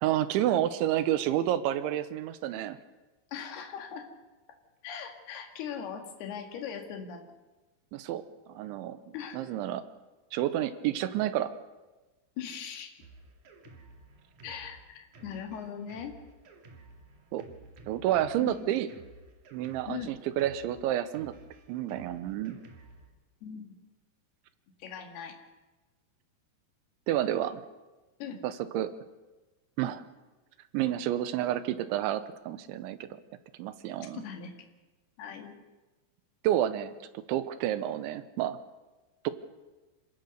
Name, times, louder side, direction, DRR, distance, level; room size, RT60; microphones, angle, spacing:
voice 1, 0.0-2.8 7.9-9.8 10.3-11.5 17.3-17.4 17.9-18.9 19.5-21.3 21.7-22.6 27.1-27.6 28.4-28.9 29.8-30.0 30.7-33.1 33.6-34.2 36.4-38.6 39.2-39.3, right 12 dB, 80° right, 12 dB, 3.1 m, -30 dB
voice 2, 3.3-4.1 4.8-7.3 9.1-9.4 12.4-12.9 14.4-16.1 18.4-18.6 19.9-20.1 23.4-23.8 24.8-25.4 28.2-28.4 34.1-34.5 35.2-35.6, left 7 dB, 60° left, 4 dB, 3.6 m, -40 dB
Drum kit, 13.0-23.1, right 3 dB, 50° right, 3.0 m, -54 dB
26.5 x 16.5 x 6.7 m, 1.2 s
omnidirectional pair, 5.6 m